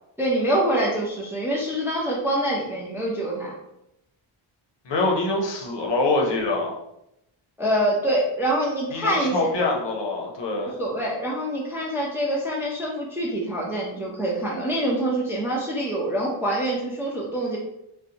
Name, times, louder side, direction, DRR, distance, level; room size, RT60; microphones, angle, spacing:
voice 1, 0.2-3.5 7.6-9.5 10.8-17.6, right 1 dB, 5° right, -3 dB, 0.4 m, -25 dB
voice 2, 4.9-6.7 8.9-10.8, left 2 dB, 60° left, 0 dB, 0.6 m, -24 dB
2.6 x 2.1 x 2.6 m, 0.85 s
wide cardioid pair, 125°, 49 cm